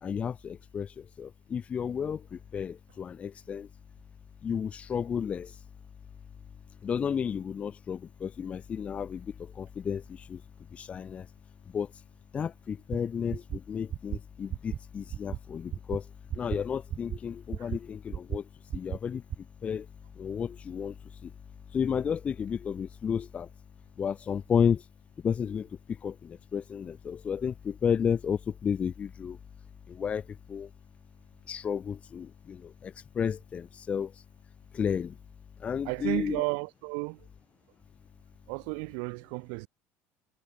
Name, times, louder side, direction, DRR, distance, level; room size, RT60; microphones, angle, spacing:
voice 1, 0.0-3.7 4.4-5.5 6.8-10.0 10.3-10.4 10.7-11.3 11.7-11.9 12.3-16.0 16.4-18.4 18.7-19.2 19.6-19.9 20.2-20.9 21.2-21.3 21.7-23.5 24.0-24.8 25.2-25.7 26.0-29.4 29.9-30.2 30.5-30.7 31.5-34.1 34.7-35.1 35.6-36.4, left 7 dB, 25° left, 2.6 m, -32 dB
sound 1, 12.9-13.0 13.3-13.6 13.9-14.2 14.5-14.8 15.1-15.4 15.7-16.0 16.3-16.6 16.9-17.2 17.5-17.8 18.1-18.4 18.7-19.0 19.3-19.4, right 10 dB, 30° right, 5.3 m, -33 dB
voice 2, 35.8-37.3 38.5-39.7, right 40 dB or more, 70° right, 6.8 m, -33 dB
cardioid pair, 165°, 6 cm